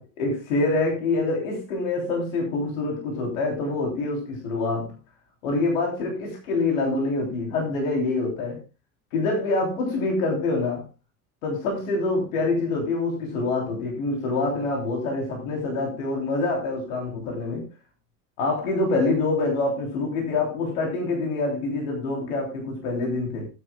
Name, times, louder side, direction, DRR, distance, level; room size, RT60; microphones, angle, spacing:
voice 1, 0.0-4.9 5.4-8.6 9.1-10.8 11.4-17.6 18.4-23.5, left 3 dB, 80° left, 3.3 m, -26 dB
18.5 x 9.7 x 2.2 m
hypercardioid pair, 65°, 41 cm